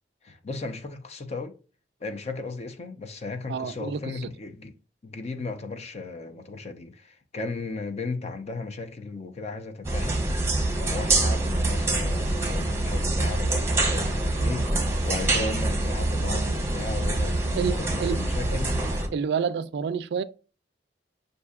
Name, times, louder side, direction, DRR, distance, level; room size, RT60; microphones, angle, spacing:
voice 1, 0.2-1.6 2.0-4.7 5.0-10.2 10.7-14.7 15.0-18.8, left 3 dB, 35° left, 0.6 m, -35 dB
voice 2, 3.5-4.3 17.5-18.2 19.1-20.2, right 6 dB, 65° right, 0.3 m, -28 dB
sound 1, 9.8-19.1, right 2 dB, 15° right, 1.0 m, -25 dB
6.8 x 2.6 x 2.3 m
head